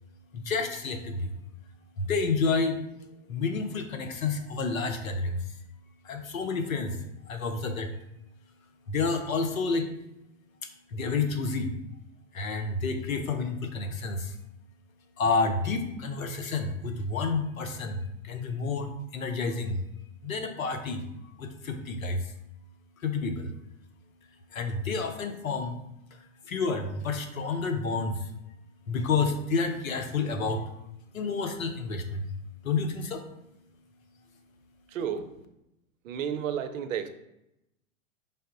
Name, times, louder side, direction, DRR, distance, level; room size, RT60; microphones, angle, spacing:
voice 1, 0.3-1.4 2.0-5.6 6.0-8.0 8.9-9.9 10.6-11.7 12.3-14.4 15.2-19.8 20.2-21.0 21.4-22.3 23.0-23.5 24.5-25.8 26.1-28.3 28.9-30.7 31.1-32.3 32.6-33.2, left 4 dB, 90° left, 7 dB, 0.7 m, -30 dB
voice 2, 34.9-35.3 36.0-37.1, right 8 dB, 70° right, 9 dB, 0.6 m, -32 dB
5.4 x 2.0 x 3.8 m, 0.86 s
hypercardioid pair, 110°, 40 cm